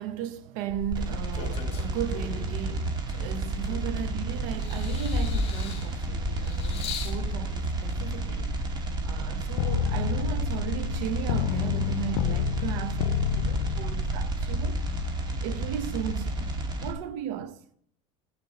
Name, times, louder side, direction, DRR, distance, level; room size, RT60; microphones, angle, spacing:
voice 1, 0.0-8.6 9.0-14.8 15.4-17.7, right 10 dB, 70° right, 1.0 m, -36 dB
sound 1, 0.7-2.5 3.1-4.2 4.6-7.2 8.1-8.2, left 4 dB, 35° left, 2.1 m, -35 dB
sound 2, 0.9-16.9, right 2 dB, 25° right, 2.0 m, -31 dB
sound 3, 9.6-15.1, left 15 dB, 85° left, 0.4 m, -30 dB
15.0 x 8.3 x 4.3 m
supercardioid pair, 130°, 17 cm